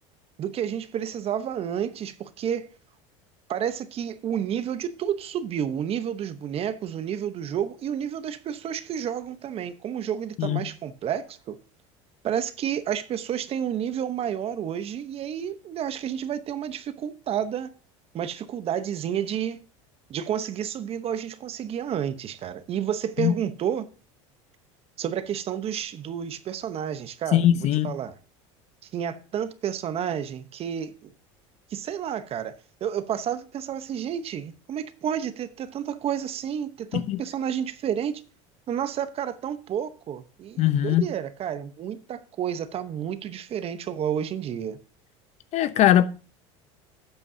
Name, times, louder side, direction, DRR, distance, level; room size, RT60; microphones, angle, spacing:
voice 1, 0.4-2.7 3.5-11.6 12.2-17.7 18.1-19.6 20.1-23.9 25.0-27.4 27.8-28.1 28.9-31.1 31.7-32.5 32.8-38.2 38.7-44.8, right 9 dB, 40° right, 0.9 m, -30 dB
voice 2, 27.3-27.9 36.9-37.2 40.6-41.1 45.5-46.1, left 12 dB, 50° left, 0.7 m, -20 dB
12.5 x 8.1 x 2.7 m
supercardioid pair, 105°, 15 cm